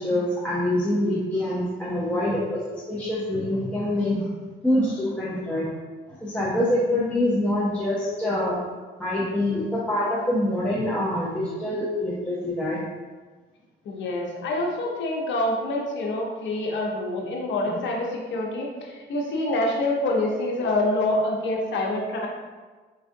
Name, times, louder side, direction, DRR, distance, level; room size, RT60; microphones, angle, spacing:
voice 1, 0.0-4.3 4.6-5.7 6.2-8.6 9.0-12.8 17.7-17.8, left 1 dB, 5° left, -7 dB, 0.6 m, -25 dB
voice 2, 13.8-22.3, left 1 dB, 70° left, -1 dB, 0.8 m, -26 dB
4.6 x 2.4 x 2.6 m, 1.4 s
cardioid pair, 90°, 20 cm